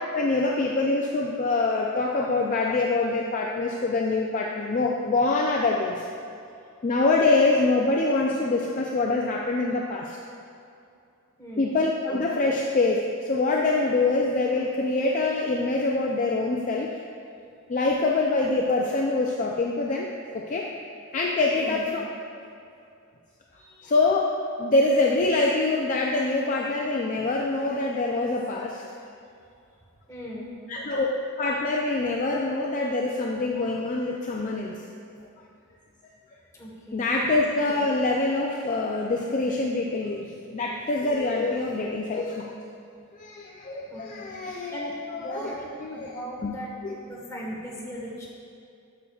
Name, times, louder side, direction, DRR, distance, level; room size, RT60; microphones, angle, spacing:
voice 1, 0.1-6.1 6.8-10.2 11.6-16.9 17.7-20.1 20.3-20.7 21.1-22.3 23.8-24.3 24.6-28.8 30.7-31.1 31.4-34.8 36.9-42.5 43.1-45.5 45.8-46.1 46.4-46.6 46.8-47.0, left 3 dB, 35° left, -1 dB, 0.4 m, -25 dB
voice 2, 11.4-11.8 21.5-21.9 23.6-23.9 30.1-30.5 36.5-37.1 43.9-44.3 44.7-45.7 45.9-46.7 47.0-48.3, equal, 15° left, -5 dB, 1.3 m, -38 dB
9.4 x 6.8 x 2.3 m, 2.5 s
head